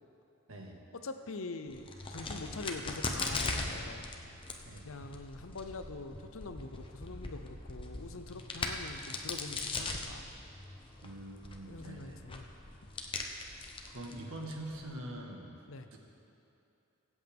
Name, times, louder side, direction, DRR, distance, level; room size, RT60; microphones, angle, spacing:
voice 1, 0.5-0.8 4.6-4.9 11.0-12.2 13.2-13.6 13.9-15.6 15.9-16.0, right 1 dB, 70° right, 0 dB, 1.6 m, -44 dB
voice 2, 1.0-4.1 4.8-10.3 11.7-12.5 15.7-15.9, left 3 dB, 65° left, 8 dB, 0.7 m, -44 dB
Crack, 1.7-14.9, left 3 dB, 25° left, 0.8 m, -40 dB
23.5 x 8.2 x 3.6 m, 2.7 s
head